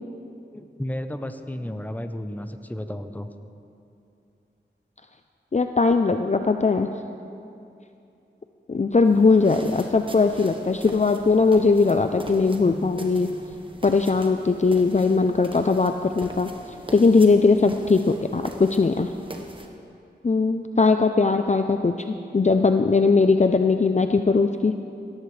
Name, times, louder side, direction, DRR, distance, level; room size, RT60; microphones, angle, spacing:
voice 1, 0.5-3.3, left 1 dB, 10° left, 8 dB, 0.7 m, -33 dB
voice 2, 5.5-6.9 8.7-13.3 13.8-16.5 16.9-19.1 20.2-24.7, left 4 dB, 40° left, 7 dB, 0.5 m, -20 dB
sound 1, 9.0-19.7, right 1 dB, 25° right, 1.2 m, -43 dB
Keyboard (musical), 12.6-14.4, right 1 dB, 70° right, 2.3 m, -45 dB
17.0 x 14.0 x 3.3 m, 2.6 s
wide cardioid pair, 45°, 19 cm